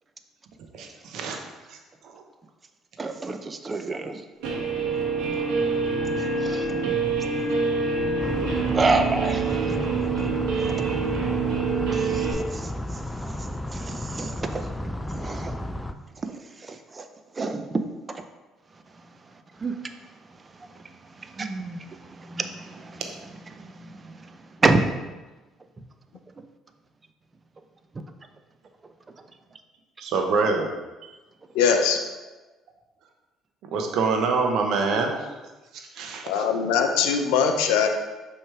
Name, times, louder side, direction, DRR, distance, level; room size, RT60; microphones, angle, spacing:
voice 1, 0.7-1.4 1.7-1.8 2.1-2.2 30.0-30.7 33.7-35.2 35.7-36.4, right 4 dB, 70° right, 3 dB, 0.9 m, -25 dB
voice 2, 3.0-4.2 6.3-7.0 8.7-9.8 10.2-10.7 11.9-15.6 16.2-17.1 17.3-18.2 18.7-24.8 26.4-26.5 27.9-28.0 29.1-29.2, right 3 dB, 30° right, 7 dB, 0.6 m, -30 dB
Guitar, 4.4-12.3, right 4 dB, 85° right, 1.2 m, -26 dB
sound 1, 8.2-15.9, left 1 dB, 10° left, 0.4 m, -33 dB
voice 3, 31.6-32.0 36.2-37.9, left 6 dB, 85° left, 4 dB, 0.5 m, -21 dB
6.3 x 3.1 x 4.8 m, 1.2 s
supercardioid pair, 70°, 0 cm